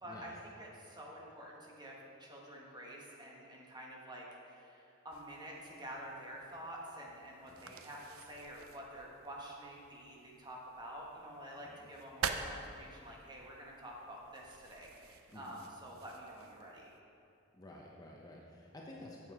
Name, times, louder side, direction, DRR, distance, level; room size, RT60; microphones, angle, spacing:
voice 1, 0.0-16.9, right 1 dB, 20° right, -2 dB, 1.2 m, -49 dB
sound 1, 5.1-17.0, right 6 dB, 90° right, 0.5 m, -47 dB
voice 2, 17.5-19.3, left 1 dB, 20° left, -3 dB, 0.7 m, -52 dB
7.7 x 7.4 x 4.7 m, 2.7 s
head